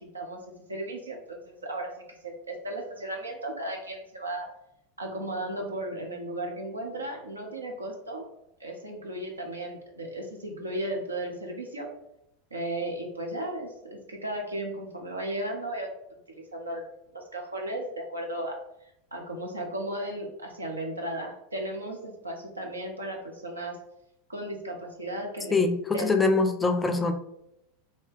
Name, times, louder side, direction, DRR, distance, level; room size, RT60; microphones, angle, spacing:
voice 1, 0.1-1.9 2.2-4.5 5.0-8.3 8.6-11.9 12.5-16.9 17.1-18.6 19.1-23.8 24.3-25.6 25.9-26.2, right 1 dB, 85° right, 1 dB, 0.7 m, -35 dB
voice 2, 25.5-27.1, left 3 dB, 15° left, 5 dB, 0.4 m, -23 dB
2.8 x 2.7 x 3.4 m, 0.81 s
figure-of-eight pair, 85°, 0 cm